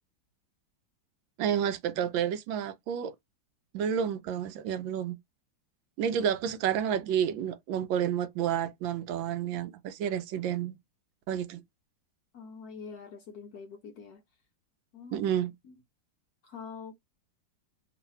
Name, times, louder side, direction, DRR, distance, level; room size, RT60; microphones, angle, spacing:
voice 1, 1.4-3.1 3.7-5.2 6.0-10.8 11.3-11.6 15.1-15.5, right 9 dB, 75° right, 1.3 m, -30 dB
voice 2, 12.3-14.2 14.9-15.3 15.6-15.7 16.4-16.9, left 5 dB, 70° left, 0.9 m, -45 dB
3.2 x 2.5 x 4.1 m
omnidirectional pair, 2.2 m